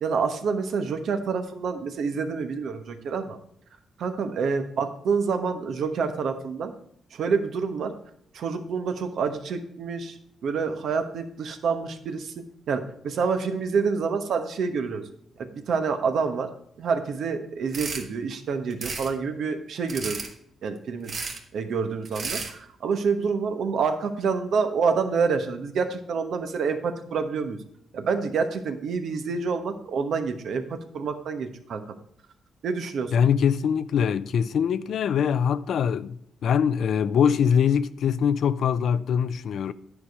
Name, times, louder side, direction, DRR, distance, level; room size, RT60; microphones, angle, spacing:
voice 1, 0.0-3.4 4.0-6.7 7.1-7.9 8.3-12.3 12.7-15.0 15.4-16.5 16.8-20.2 20.6-21.1 21.5-27.6 27.9-31.8 32.6-33.1, right 5 dB, 70° right, 1.1 m, -27 dB
sound 1, 17.7-18.0 18.7-19.1 19.9-20.3 21.1-21.4 22.0-22.5, right 4 dB, 55° right, 1.5 m, -33 dB
voice 2, 33.1-39.7, left 7 dB, 70° left, 0.4 m, -23 dB
10.0 x 4.9 x 5.3 m
cardioid pair, 110°, 0 cm